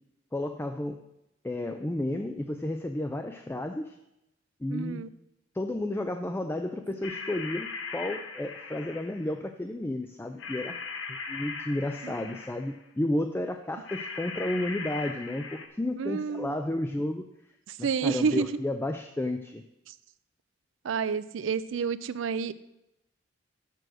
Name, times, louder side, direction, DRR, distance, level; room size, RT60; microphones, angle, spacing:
voice 1, 0.3-1.0 1.4-4.0 4.6-5.1 5.5-10.8 11.1-17.2 17.8-19.6, left 1 dB, 10° left, 6 dB, 0.3 m, -32 dB
voice 2, 4.7-5.1 12.0-12.1 16.0-16.6 17.7-18.5 20.8-22.5, right 6 dB, 85° right, 16 dB, 0.4 m, -29 dB
sound 1, 7.0-9.3 10.4-12.8 13.8-15.7, left 5 dB, 85° left, 1.0 m, -39 dB
6.8 x 6.3 x 6.2 m, 0.88 s
head